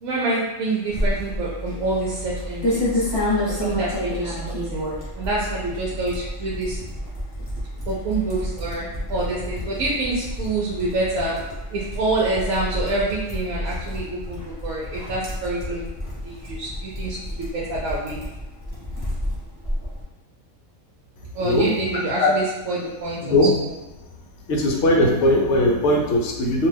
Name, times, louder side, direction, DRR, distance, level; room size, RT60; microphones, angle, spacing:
voice 1, 0.0-3.1 3.5-4.8 5.2-6.8 7.8-11.4 11.7-15.9 16.2-18.2 21.3-23.3 23.6-23.7, right 2 dB, 80° right, -5 dB, 1.0 m, -27 dB
sound 1, 0.9-20.0, left 1 dB, 20° left, 0.8 m, -30 dB
voice 2, 24.5-26.7, left 1 dB, 65° left, 0 dB, 0.8 m, -19 dB
2.6 x 2.2 x 3.3 m, 1.1 s
omnidirectional pair, 1.4 m